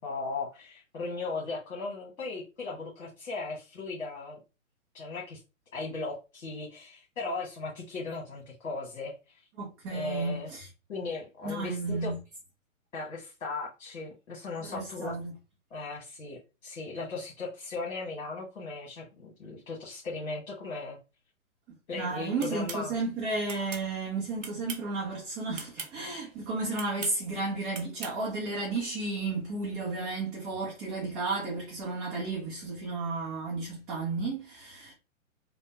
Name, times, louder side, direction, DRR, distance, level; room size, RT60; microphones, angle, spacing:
voice 1, 0.0-4.4 4.9-5.4 5.7-9.4 9.9-10.5 10.9-12.1 12.9-15.1 15.7-21.0 21.9-22.9, left 3 dB, 65° left, 1.3 m, -37 dB
voice 2, 9.6-10.6 11.4-12.2 14.6-15.3 21.9-34.9, right 3 dB, 15° right, 0.6 m, -33 dB
sound 1, 22.4-22.8 23.5-23.9 24.4-24.9 25.5-25.9 26.7-27.2 27.7-28.2, right 6 dB, 65° right, 0.9 m, -40 dB
3.2 x 2.1 x 2.8 m
figure-of-eight pair, 125°, 41 cm